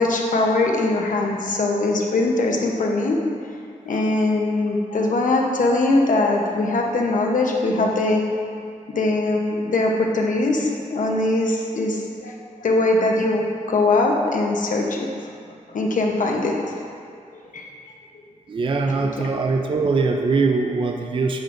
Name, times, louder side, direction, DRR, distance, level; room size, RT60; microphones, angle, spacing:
voice 1, 0.0-3.2 3.9-8.2 8.9-15.1 15.7-16.8 17.5-17.7, left 2 dB, 80° left, 0 dB, 0.9 m, -21 dB
voice 2, 18.5-21.4, right 4 dB, 40° right, 3 dB, 0.4 m, -22 dB
9.2 x 6.7 x 2.6 m, 2.3 s
wide cardioid pair, 170°, 13 cm